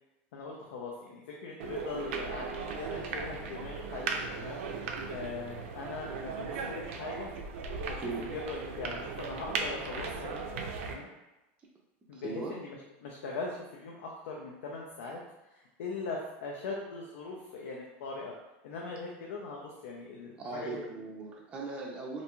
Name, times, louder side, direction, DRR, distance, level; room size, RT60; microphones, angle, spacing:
voice 1, 0.3-4.6 5.1-7.3 7.9-11.1 12.1-15.2 15.5-18.3 18.6-20.8, left 3 dB, 90° left, -1 dB, 0.4 m, -41 dB
sound 1, 1.6-10.9, right 4 dB, 80° right, 0.4 m, -37 dB
voice 2, 12.1-12.5 20.4-22.2, right 3 dB, 15° right, -3 dB, 0.4 m, -39 dB
2.5 x 2.2 x 2.9 m, 1.0 s
supercardioid pair, 150°, 7 cm